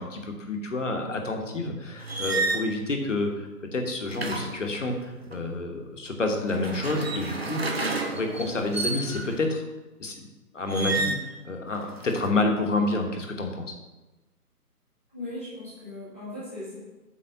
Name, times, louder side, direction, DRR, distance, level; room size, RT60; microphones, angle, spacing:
voice 1, 0.0-7.7 7.9-9.6 10.0-10.3 10.5-13.8, left 2 dB, 50° left, 3 dB, 1.3 m, -29 dB
sound 1, 2.0-2.7 4.1-5.4 6.4-9.4 10.7-11.3 11.8-12.3, right 3 dB, 40° right, 0.6 m, -31 dB
voice 2, 15.1-16.8, left 1 dB, 10° left, -11 dB, 1.0 m, -38 dB
8.4 x 3.5 x 6.6 m, 1.1 s
hypercardioid pair, 175°, 47 cm